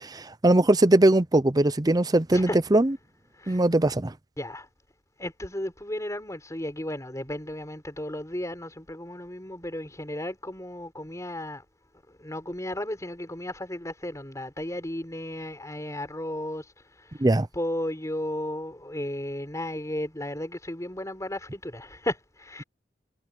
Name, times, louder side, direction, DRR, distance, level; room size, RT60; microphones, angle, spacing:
voice 1, 0.0-2.9 3.5-4.1 17.2-17.5, right 1 dB, 20° right, 0.6 m, -21 dB
voice 2, 4.4-4.7 5.2-11.6 12.2-17.3 17.5-22.6, left 1 dB, 20° left, 4.4 m, -34 dB
head